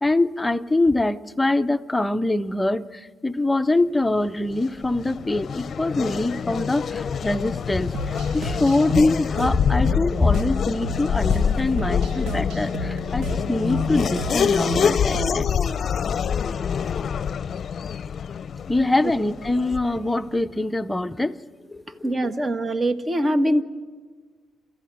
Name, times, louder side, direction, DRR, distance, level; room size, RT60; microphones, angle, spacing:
voice 1, 0.0-15.5 18.7-21.4 21.7-22.1, left 2 dB, 15° left, 0.7 m, -24 dB
Race car auto racing / Accelerating revving vroom, 4.5-20.1, left 7 dB, 50° left, 0.6 m, -26 dB
sound 1, 7.9-15.6, right 2 dB, 85° right, 1.8 m, -33 dB
voice 2, 22.0-23.6, right 1 dB, 30° right, 1.5 m, -22 dB
28.5 x 14.5 x 9.4 m
cardioid pair, 90°, 0 cm